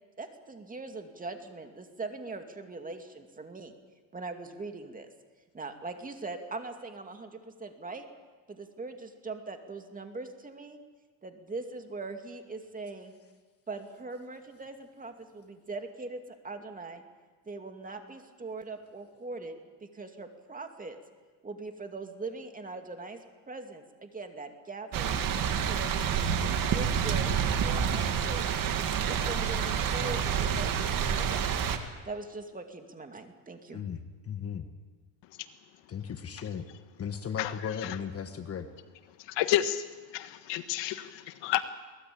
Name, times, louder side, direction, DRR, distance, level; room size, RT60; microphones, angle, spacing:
voice 1, 0.2-3.7 4.1-5.1 5.5-8.1 8.5-10.8 11.2-13.1 13.7-17.0 17.5-19.5 19.8-21.0 21.4-23.2 23.5-25.2 25.6-28.6 29.1-31.5 32.0-33.8, right 3 dB, 20° right, 5 dB, 2.4 m, -41 dB
sound 1, 24.9-31.8, right 7 dB, 45° right, 2.2 m, -28 dB
voice 2, 33.7-34.6 35.9-36.7 37.0-38.7, left 7 dB, 30° left, 8 dB, 1.5 m, -36 dB
voice 3, 39.3-39.8 40.1-41.6, left 12 dB, 65° left, 10 dB, 1.5 m, -30 dB
23.0 x 18.5 x 8.6 m, 1.4 s
cardioid pair, 125°, 46 cm